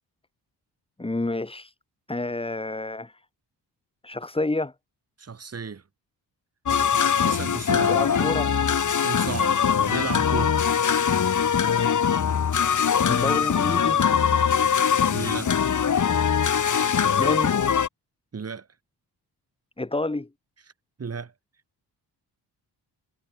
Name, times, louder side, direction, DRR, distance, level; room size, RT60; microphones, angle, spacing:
voice 1, 1.0-1.7 2.1-3.1 4.0-4.7 7.9-8.5 13.1-14.0 17.0-17.5 19.8-20.3, left 2 dB, 15° left, 3.7 m, -29 dB
voice 2, 5.2-5.8 7.2-10.6 15.0-15.6 18.3-18.7 21.0-21.3, right 5 dB, 35° right, 4.4 m, -34 dB
sound 1, 6.7-17.9, left 7 dB, 45° left, 2.2 m, -22 dB
cardioid pair, 125°, 42 cm